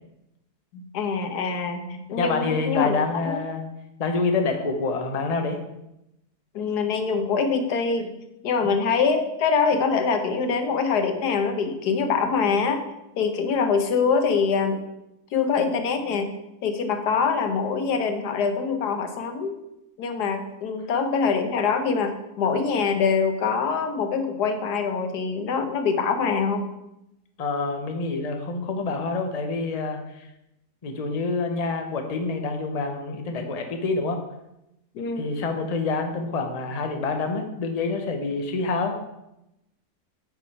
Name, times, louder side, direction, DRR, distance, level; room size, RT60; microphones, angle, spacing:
voice 1, 0.7-3.4 6.5-8.1 8.4-12.8 13.2-14.8 15.3-16.3 16.6-19.5 20.0-26.7 34.9-35.6, left 5 dB, 85° left, 7 dB, 1.5 m, -24 dB
voice 2, 2.1-3.6 4.0-5.6 8.6-8.7 27.4-30.3 30.8-34.2 35.2-38.9, left 3 dB, 30° left, 5 dB, 0.8 m, -27 dB
8.7 x 5.7 x 4.7 m, 0.89 s
omnidirectional pair, 1.7 m